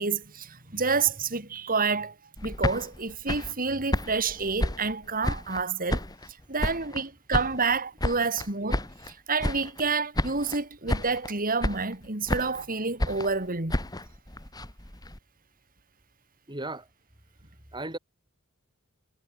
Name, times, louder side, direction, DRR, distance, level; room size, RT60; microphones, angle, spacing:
voice 1, 0.0-2.2 2.4-6.1 6.5-13.8, right 4 dB, 40° right, 3.4 m, -29 dB
sound 1, 2.4-5.6 5.9-7.0 7.3-9.1 9.4-9.9 10.1-10.6 10.9-11.3 11.6-12.7 13.0-15.2, left 1 dB, 15° left, 2.3 m, -31 dB
voice 2, 16.5-16.9 17.7-18.0, right 2 dB, 20° right, 7.5 m, -36 dB
head